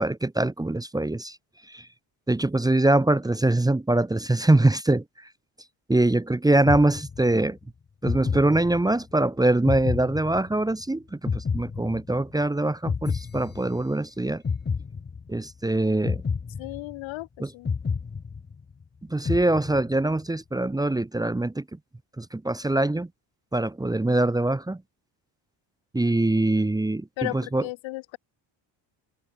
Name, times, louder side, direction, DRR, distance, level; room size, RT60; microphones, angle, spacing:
voice 1, 0.0-1.3 1.7-1.8 2.3-5.0 5.9-7.6 8.0-14.4 15.3-16.2 17.4-17.5 19.1-21.6 22.2-23.1 23.5-24.8 25.9-27.0 27.3-27.6, right 2 dB, 10° right, 1.4 m, -23 dB
sound 1, 6.7-7.5 8.0-9.1 9.7-10.8 11.3-12.4 12.9-14.0 14.4-15.5 16.0-17.2 17.7-18.8 19.3-20.1, left 5 dB, 20° left, 1.9 m, -30 dB
voice 2, 16.6-17.7 27.2-28.2, left 20 dB, 80° left, 5.9 m, -35 dB
cardioid pair, 125°, 45 cm